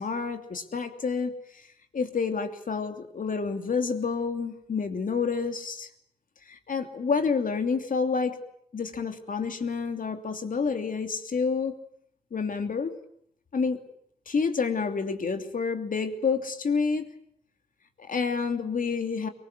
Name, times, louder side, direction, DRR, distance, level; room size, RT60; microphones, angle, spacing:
voice 1, 0.0-1.6 1.9-5.9 6.5-8.4 8.7-11.7 12.3-12.9 13.5-13.8 14.3-17.1 18.0-19.3, left 5 dB, 60° left, 7 dB, 2.9 m, -29 dB
23.0 x 20.5 x 9.5 m, 0.70 s
cardioid pair, 50°, 16 cm